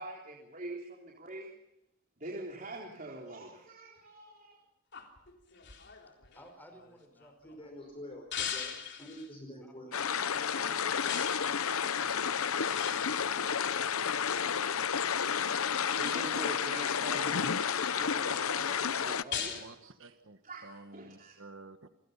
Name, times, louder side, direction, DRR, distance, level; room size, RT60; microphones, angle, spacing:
voice 1, 0.0-1.5 2.2-4.6 15.3-15.5 15.9-19.9 20.4-21.4, right 1 dB, 40° right, -2 dB, 3.9 m, -44 dB
sound 1, 4.9-7.6 8.3-9.3 11.0-11.6 12.6-14.5 15.9-16.6 17.1-18.1 19.3-19.7, left 8 dB, 55° left, 3.5 m, -41 dB
voice 2, 6.3-7.7 8.7-9.2 9.6-10.0, equal, 10° left, 6 dB, 5.4 m, -58 dB
voice 3, 7.4-9.9, equal, 25° left, 2 dB, 5.0 m, -47 dB
sound 2, 9.9-19.2, left 7 dB, 85° left, 0.8 m, -31 dB
voice 4, 13.8-14.2 15.4-16.0 18.3-18.5 19.0-19.2 19.6-21.9, right 3 dB, 65° right, 8 dB, 1.5 m, -52 dB
28.5 x 22.0 x 5.7 m, 0.82 s
head